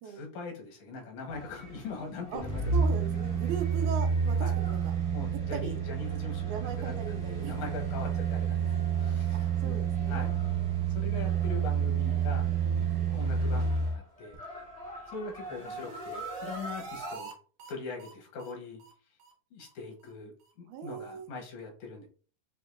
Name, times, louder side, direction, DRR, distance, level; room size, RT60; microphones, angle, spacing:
voice 1, 0.0-2.6 3.1-3.2 4.4-4.6 5.1-9.8 10.1-10.3 10.9-12.5 13.0-14.4 15.1-17.3 17.7-18.8 19.5-22.1, left 3 dB, 80° left, 1 dB, 2.5 m, -42 dB
sound 1, 1.3-17.2, right 1 dB, 50° left, 0.4 m, -48 dB
sound 2, 2.4-14.0 14.3-14.4, right 6 dB, 45° right, 0.4 m, -29 dB
voice 2, 2.7-4.9 5.5-5.8 6.4-7.7 8.8-8.9 9.3-10.3 20.7-21.3, right 7 dB, 85° right, 5 dB, 2.1 m, -39 dB
sound 3, 15.3-17.3 17.6-17.7 18.0-18.1 18.4-18.5 18.8-18.9 19.2-19.3 19.6-19.7 20.0-20.1 20.4-20.5, right 3 dB, 70° right, 1.2 m, -45 dB
6.4 x 2.7 x 2.5 m, 0.40 s
omnidirectional pair, 3.3 m